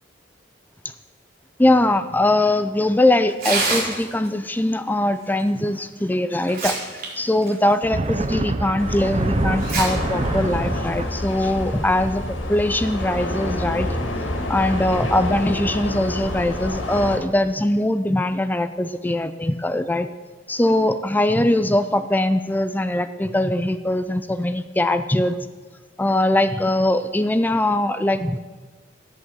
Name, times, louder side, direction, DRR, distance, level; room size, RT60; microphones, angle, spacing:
voice 1, 1.6-6.8 7.2-13.9 14.5-20.1 20.5-25.4 26.0-28.4, left 1 dB, 10° left, 11 dB, 0.5 m, -21 dB
Tearing, 3.3-4.3 5.7-5.8 6.3-7.1 7.4-7.5 8.2-8.3 9.5-9.8 10.2-10.3 11.2-11.4, right 3 dB, 50° right, 4.3 m, -25 dB
sound 1, 7.7-11.0, right 2 dB, 35° right, 0.7 m, -26 dB
sound 2, 8.8-17.2, left 1 dB, 85° left, 2.2 m, -28 dB
14.0 x 10.5 x 7.3 m, 1.4 s
head